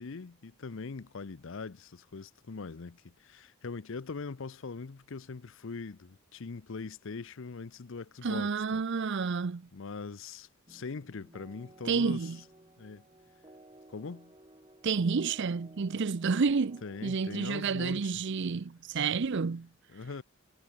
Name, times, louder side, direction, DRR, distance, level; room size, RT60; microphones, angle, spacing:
voice 1, 0.0-8.8 9.7-12.3 12.8-13.1 13.9-14.3 16.8-18.2 19.9-20.2, left 4 dB, 65° left, 0.6 m, -42 dB
voice 2, 8.2-9.7 11.9-12.4 14.8-19.7, right 5 dB, 55° right, 0.6 m, -30 dB
sound 1, 10.7-17.5, right 1 dB, 25° right, 4.0 m, -56 dB
head